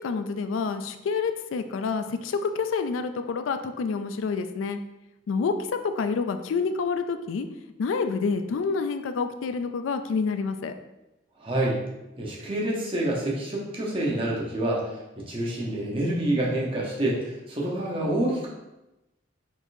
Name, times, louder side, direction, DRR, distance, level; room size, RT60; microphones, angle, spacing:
voice 1, 0.0-4.8 5.3-5.5 5.8-7.5 7.8-10.7, left 5 dB, 90° left, 9 dB, 0.4 m, -28 dB
voice 2, 11.4-11.8 12.2-18.5, right 1 dB, 30° right, -4 dB, 0.9 m, -27 dB
4.5 x 4.0 x 2.6 m, 0.97 s
head